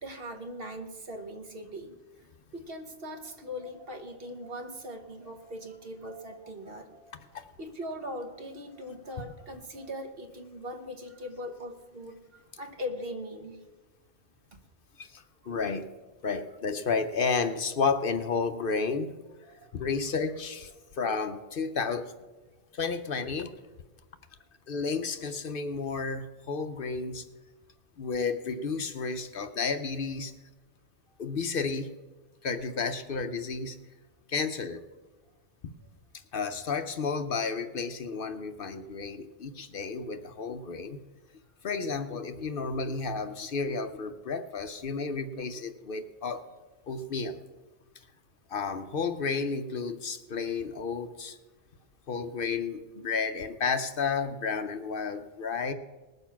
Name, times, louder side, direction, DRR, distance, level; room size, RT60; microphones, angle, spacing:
voice 1, 0.0-1.9 2.5-13.6 14.5-14.6 15.4-15.5 19.4-19.8 24.4-24.5 31.1-31.2 35.8-35.9, equal, 55° right, 4 dB, 1.4 m, -40 dB
voice 2, 15.0-15.9 16.2-19.1 19.7-22.1 22.7-23.5 24.7-27.3 28.0-30.3 31.2-31.9 32.4-33.8 34.3-34.8 36.3-41.0 41.6-46.4 46.9-47.4 48.5-51.4 52.1-55.7, left 5 dB, 55° left, 9 dB, 0.8 m, -32 dB
19.5 x 6.8 x 5.8 m, 1.2 s
omnidirectional pair, 1.1 m